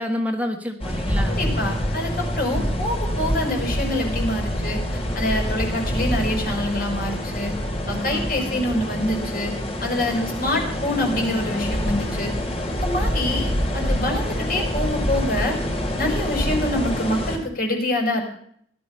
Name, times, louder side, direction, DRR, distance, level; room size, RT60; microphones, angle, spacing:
voice 1, 0.0-1.4 2.6-2.8 8.1-8.6 10.1-10.2 10.5-10.8, left 1 dB, 10° right, 5 dB, 1.4 m, -29 dB
sound 1, 0.8-17.4, equal, 35° left, 4.1 m, -26 dB
sound 2, 1.1-10.2 11.6-12.2, equal, 75° left, 2.7 m, -37 dB
voice 2, 1.3-4.8 5.1-7.5 7.9-9.5 9.8-12.3 12.7-15.5 16.0-18.2, left 1 dB, 55° left, 3 dB, 4.9 m, -26 dB
17.5 x 12.0 x 5.6 m, 0.65 s
head